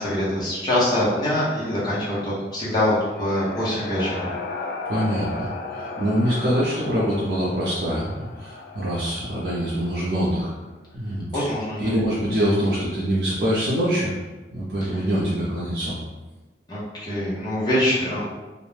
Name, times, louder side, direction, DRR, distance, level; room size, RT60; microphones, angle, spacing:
voice 1, 0.0-4.3 11.3-11.9 16.7-18.3, left 1 dB, 25° left, -8 dB, 0.8 m, -24 dB
sound 1, 2.9-10.6, left 3 dB, 60° left, 0.4 m, -36 dB
voice 2, 4.8-10.5 10.9-11.5 11.8-14.1 14.5-16.0, equal, 80° right, -8 dB, 0.6 m, -24 dB
2.6 x 2.1 x 3.2 m, 1.2 s
head